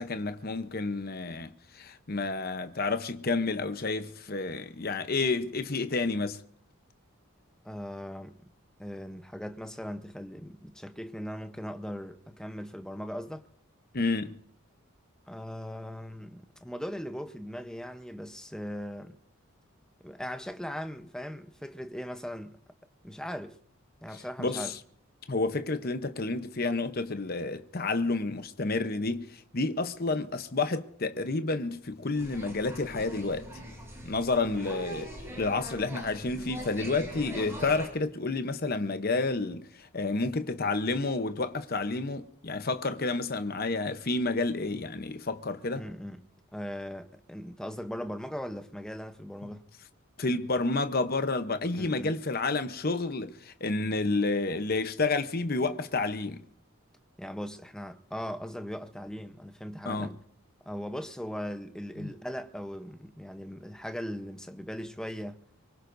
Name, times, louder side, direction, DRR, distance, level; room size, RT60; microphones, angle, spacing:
voice 1, 0.0-6.4 13.9-14.4 24.4-24.8 25.3-33.6 34.0-35.1 35.4-45.9 50.2-56.4 59.9-60.1 62.0-62.1, left 3 dB, 45° left, 0.8 m, -30 dB
voice 2, 7.6-8.4 8.8-13.4 15.3-19.2 20.0-22.6 23.0-23.6 24.0-24.7 34.4-34.7 45.8-46.2 46.5-49.7 51.7-52.1 57.2-60.2 60.7-65.4, equal, 5° left, 0.8 m, -39 dB
sound 1, 32.1-37.9, equal, 10° right, 6.6 m, -42 dB
24.5 x 22.5 x 2.6 m
head